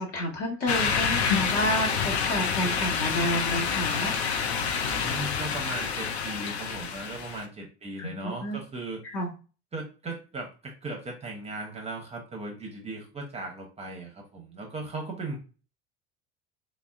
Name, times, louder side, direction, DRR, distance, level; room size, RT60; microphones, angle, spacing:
voice 1, 0.0-4.5 8.0-8.6 9.0-9.3, equal, 45° left, -1 dB, 0.8 m, -30 dB
sound 1, 0.7-7.4, left 6 dB, 70° left, 0.5 m, -28 dB
voice 2, 4.8-9.0 9.7-15.4, right 2 dB, 20° right, 1 dB, 0.6 m, -37 dB
3.4 x 2.1 x 2.2 m, 0.34 s
figure-of-eight pair, 65°, 34 cm